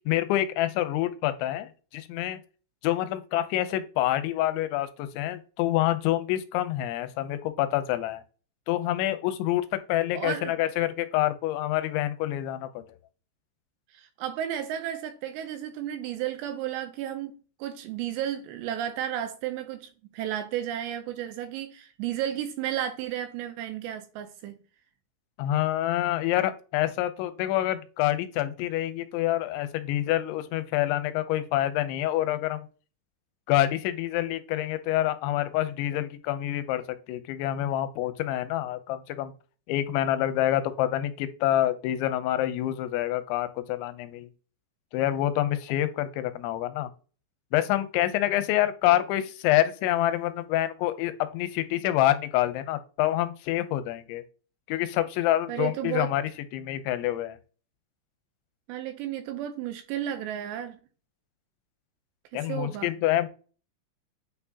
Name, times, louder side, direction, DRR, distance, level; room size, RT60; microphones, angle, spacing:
voice 1, 0.1-2.4 2.8-8.2 8.7-13.0 25.4-32.7 33.5-36.8 37.1-39.3 39.7-44.3 44.9-46.9 47.5-54.2 54.7-57.4 62.3-63.3, left 13 dB, 85° left, 2.9 m, -27 dB
voice 2, 10.1-10.5 13.9-24.6 48.8-49.0 55.5-56.1 58.7-60.8 62.3-62.9, right 11 dB, 85° right, 2.6 m, -33 dB
8.9 x 4.5 x 2.8 m
omnidirectional pair, 5.4 m